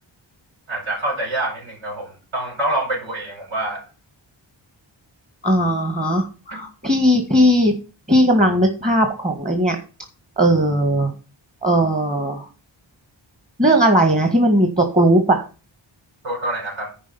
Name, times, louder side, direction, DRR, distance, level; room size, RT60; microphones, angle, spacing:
voice 1, 0.7-3.8 6.5-6.6 16.2-17.0, right 1 dB, 85° right, 1 dB, 4.7 m, -26 dB
voice 2, 5.4-7.7 8.1-9.8 10.4-11.1 11.6-12.5 13.6-15.4, equal, 15° right, 5 dB, 1.8 m, -17 dB
10.0 x 4.9 x 7.1 m, 0.34 s
wide cardioid pair, 80°, 47 cm